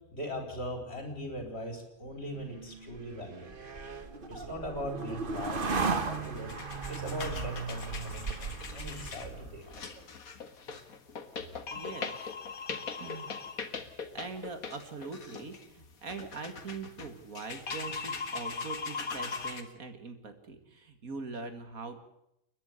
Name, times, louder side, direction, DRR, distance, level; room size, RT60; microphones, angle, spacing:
voice 1, 0.1-3.5 4.3-6.5 6.9-10.0, equal, 45° left, 4 dB, 4.9 m, -40 dB
sound 1, 2.4-9.8, right 4 dB, 40° right, 1.4 m, -36 dB
sound 2, 6.0-19.6, left 5 dB, 80° left, 2.1 m, -40 dB
voice 2, 11.7-12.3 12.9-13.4 14.1-22.0, right 4 dB, 75° right, 8 dB, 2.6 m, -42 dB
29.5 x 10.5 x 8.4 m, 0.80 s
omnidirectional pair, 1.5 m